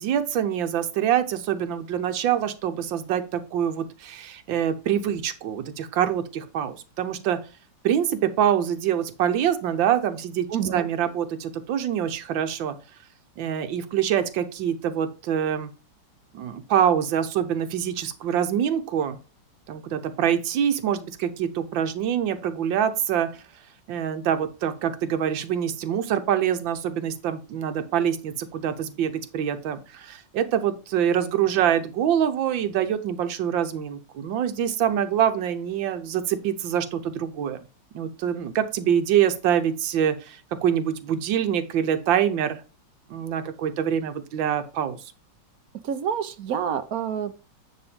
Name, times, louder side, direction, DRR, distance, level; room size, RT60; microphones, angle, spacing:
voice 1, 0.0-7.4 7.8-12.8 13.4-15.7 16.3-19.2 19.7-23.4 23.9-37.6 37.9-42.6 43.1-45.0, right 9 dB, 90° right, 8 dB, 1.6 m, -25 dB
voice 2, 10.5-10.9 45.8-47.3, right 8 dB, 60° right, 12 dB, 1.1 m, -28 dB
9.9 x 3.7 x 5.1 m, 0.32 s
omnidirectional pair, 2.0 m